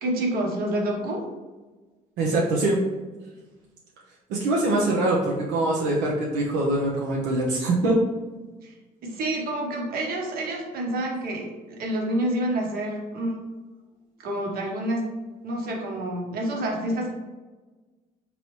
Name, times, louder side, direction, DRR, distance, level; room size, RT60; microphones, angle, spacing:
voice 1, 0.0-1.3 8.6-8.7 9.0-13.4 14.2-15.1 15.4-17.1, right 1 dB, 60° right, -1 dB, 1.1 m, -28 dB
voice 2, 2.2-2.8 4.3-8.0, right 2 dB, 90° right, -3 dB, 0.7 m, -23 dB
3.9 x 3.1 x 3.1 m, 1.3 s
cardioid pair, 110°, 17 cm